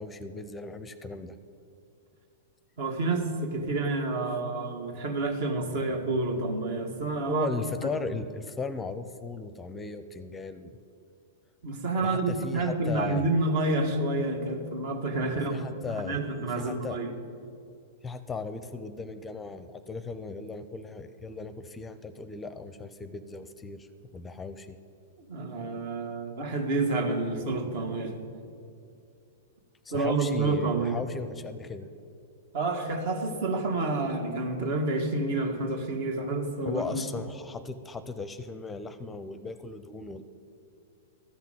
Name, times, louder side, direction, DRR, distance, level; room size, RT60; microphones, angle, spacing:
voice 1, 0.0-1.3 7.3-10.8 12.0-13.3 15.2-16.2 16.5-17.0 18.0-23.9 24.1-24.8 29.8-31.9 36.6-40.2, left 4 dB, 15° left, 12 dB, 0.6 m, -37 dB
voice 2, 2.8-7.5 11.6-15.6 15.9-17.1 25.3-28.1 29.9-31.0 32.5-37.0, right 2 dB, 60° right, 4 dB, 1.9 m, -29 dB
13.0 x 5.8 x 9.2 m, 2.5 s
hypercardioid pair, 110°, 0 cm